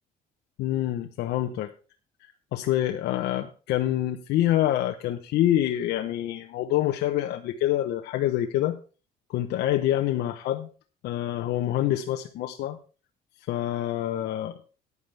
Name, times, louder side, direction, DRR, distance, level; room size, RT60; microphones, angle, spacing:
voice 1, 0.6-1.7 2.5-8.8 9.3-10.7 11.0-12.8 13.5-14.6, left 13 dB, 80° left, 5 dB, 0.9 m, -26 dB
14.5 x 9.7 x 3.4 m, 0.36 s
cardioid pair, 110°, 17 cm